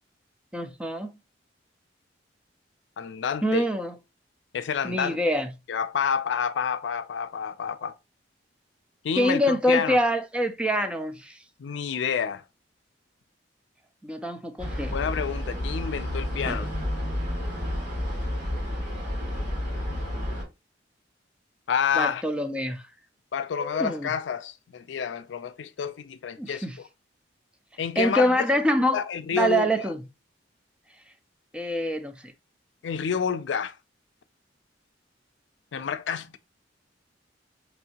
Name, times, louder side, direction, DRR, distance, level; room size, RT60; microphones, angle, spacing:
voice 1, 0.5-1.1 3.4-3.9 4.8-5.5 9.2-11.4 14.0-15.0 22.0-22.8 23.6-24.1 26.4-26.8 28.0-29.0 29.3-30.0 31.5-32.2, equal, 5° right, 0.4 m, -25 dB
voice 2, 3.0-3.7 4.5-5.2 5.7-7.9 9.0-10.0 11.6-12.4 14.9-16.7 21.7-22.2 23.3-26.9 27.8-28.4 28.9-29.9 32.8-33.8 35.7-36.4, left 7 dB, 80° left, 0.4 m, -29 dB
sound 1, 14.6-20.4, left 1 dB, 45° right, 2.5 m, -30 dB
4.1 x 2.7 x 2.8 m
head